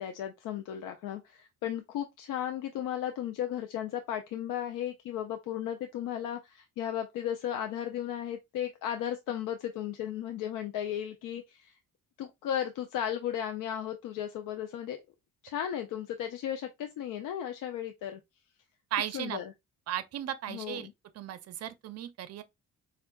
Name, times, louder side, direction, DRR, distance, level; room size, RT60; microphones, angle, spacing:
voice 1, 0.0-11.7 12.2-15.0 15.4-18.2 19.1-19.5 20.5-20.9, left 10 dB, 80° left, 0.5 m, -35 dB
voice 2, 18.9-19.4 19.9-20.9 21.1-22.4, right 11 dB, 55° right, 0.5 m, -35 dB
4.4 x 2.4 x 2.2 m
cardioid pair, 110°, 31 cm